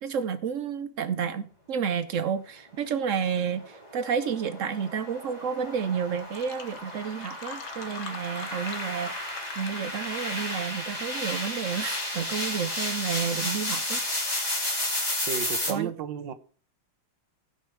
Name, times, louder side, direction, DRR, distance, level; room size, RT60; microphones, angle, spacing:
voice 1, 0.0-14.0 15.7-15.9, right 7 dB, 85° right, 0.6 m, -31 dB
sound 1, 3.6-15.7, left 1 dB, 20° left, 2.6 m, -32 dB
Fill (with liquid), 5.9-6.0 6.2-11.0, left 6 dB, 55° left, 1.3 m, -43 dB
voice 2, 15.3-16.3, right 9 dB, 65° right, 1.5 m, -33 dB
16.0 x 5.7 x 4.7 m
omnidirectional pair, 2.3 m